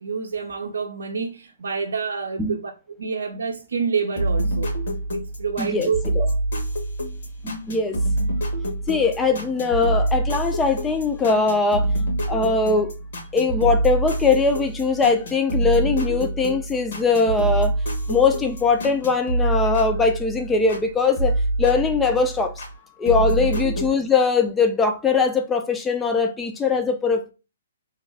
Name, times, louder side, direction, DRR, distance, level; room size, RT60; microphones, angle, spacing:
voice 1, 0.0-4.7 5.1-6.4, right 5 dB, 75° right, 0.5 m, -28 dB
sound 1, 4.2-20.8 21.2-22.7 23.1-23.9, right 1 dB, 65° left, 1.7 m, -26 dB
voice 2, 5.6-5.9 6.2-6.3 7.4-8.0 8.9-11.9 12.3-13.0 13.3-17.7 18.1-22.5 23.0-27.3, left 4 dB, 10° left, 0.5 m, -21 dB
3.4 x 2.2 x 3.3 m
hypercardioid pair, 140°, 0 cm